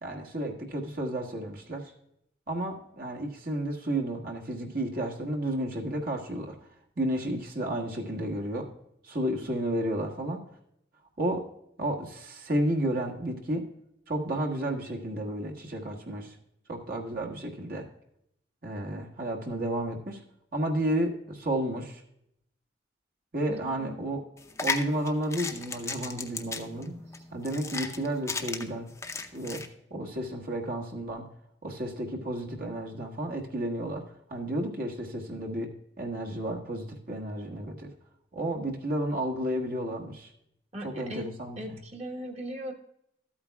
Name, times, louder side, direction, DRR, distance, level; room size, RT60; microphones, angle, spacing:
voice 1, 0.0-1.9 2.5-6.6 7.0-8.7 9.0-10.4 11.2-11.5 11.8-13.7 14.1-16.3 16.7-17.9 18.6-20.2 20.5-22.0 23.3-24.2 24.6-26.9 27.3-28.9 29.3-29.6 29.9-31.3 31.6-37.9 38.3-40.3 40.8-41.8, right 1 dB, 55° right, 0 dB, 1.4 m, -32 dB
voice 2, 23.5-24.0 27.1-27.2 40.7-41.3 41.6-42.7, equal, 35° right, 3 dB, 1.2 m, -38 dB
sound 1, 24.4-29.7, left 4 dB, 15° left, 0.6 m, -35 dB
13.5 x 8.6 x 2.3 m, 0.75 s
head